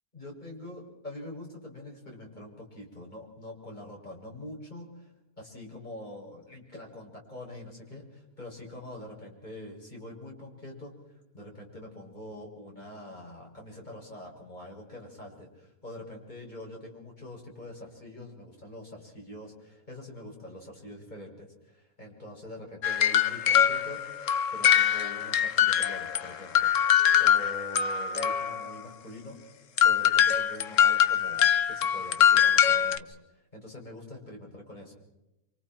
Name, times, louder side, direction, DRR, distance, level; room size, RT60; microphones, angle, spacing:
voice 1, 0.1-10.9 11.3-29.4 29.8-34.9, left 1 dB, 30° left, -2 dB, 7.3 m, -44 dB
sound 1, 22.8-26.3 26.5-28.7 29.8-33.0, left 9 dB, 55° left, 1.3 m, -23 dB
29.0 x 26.0 x 4.6 m, 0.93 s
omnidirectional pair, 1.6 m